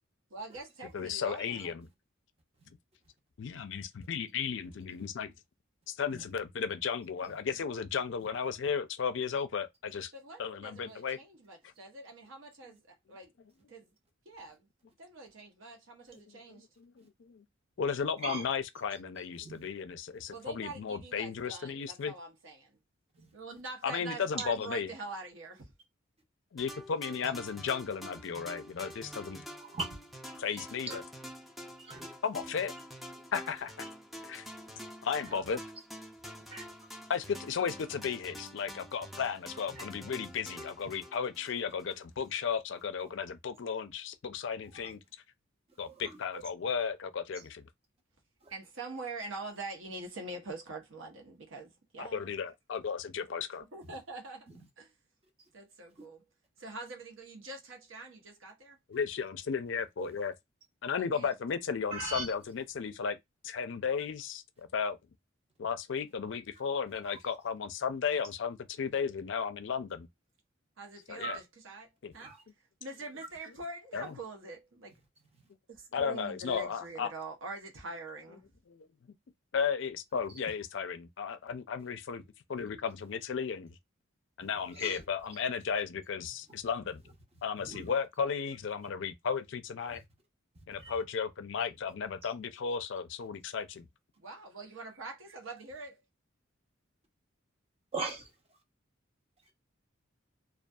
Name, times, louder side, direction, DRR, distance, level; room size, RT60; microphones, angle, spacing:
voice 1, 0.3-1.7 10.1-13.3 13.7-13.9 14.3-14.7 15.0-16.7 20.3-22.8 23.3-25.7 48.5-52.3 53.7-54.5 54.8-54.9 55.5-56.2 56.6-58.8 61.1-61.3 70.8-72.3 72.8-75.0 75.7-78.4 94.2-95.9, right 3 dB, 75° right, 0.8 m, -44 dB
voice 2, 0.9-1.9 3.4-5.3 5.9-10.1 10.4-11.2 16.5-17.4 17.8-22.1 23.8-24.9 26.5-29.4 30.4-31.0 32.2-32.7 33.3-33.9 34.3-34.5 35.0-35.6 37.1-45.0 45.8-47.7 52.0-53.7 58.9-60.3 60.8-63.2 63.4-65.0 65.6-70.1 71.1-71.4 72.0-72.1 73.9-74.1 75.9-77.1 78.7-78.9 79.5-82.2 82.5-83.7 84.4-87.0 87.4-90.0 90.7-93.9, left 6 dB, 65° left, 0.4 m, -34 dB
voice 3, 19.4-19.7 23.1-23.3 24.4-24.5 29.7-29.9 30.3-31.0 31.8-32.1 33.4-33.5 33.8-33.9 35.2-35.4 36.5-36.7 39.2-39.3 39.8-39.9 44.8-44.9 45.7-46.4 47.4-47.5 48.4-48.5 54.5-54.6 56.0-56.1 60.0-60.3 61.9-62.3 67.0-67.2 67.7-67.8 71.2-71.4 72.2-72.4 73.9-74.1 84.4-85.0 87.6-87.9 89.9-90.0 90.5-91.0 97.9-98.3, right 3 dB, 30° right, 0.7 m, -41 dB
sound 1, 26.6-42.0, equal, ahead, 0.4 m, -47 dB
2.6 x 2.3 x 2.3 m
head